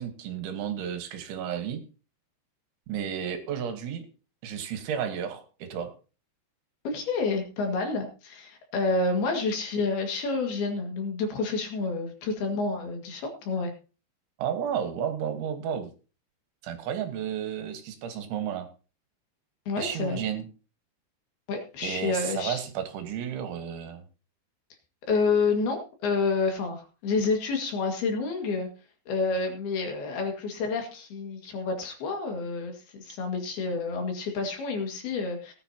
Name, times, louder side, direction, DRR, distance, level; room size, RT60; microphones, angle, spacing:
voice 1, 0.0-1.8 2.9-4.1 4.4-5.9 14.4-15.9 16.6-18.7 19.8-20.5 21.8-24.0, right 8 dB, 75° right, 8 dB, 3.7 m, -32 dB
voice 2, 6.9-13.7 19.7-20.2 21.5-22.6 25.1-28.7 29.1-35.5, left 3 dB, 60° left, 3 dB, 3.6 m, -29 dB
18.5 x 9.9 x 2.8 m, 0.34 s
omnidirectional pair, 5.5 m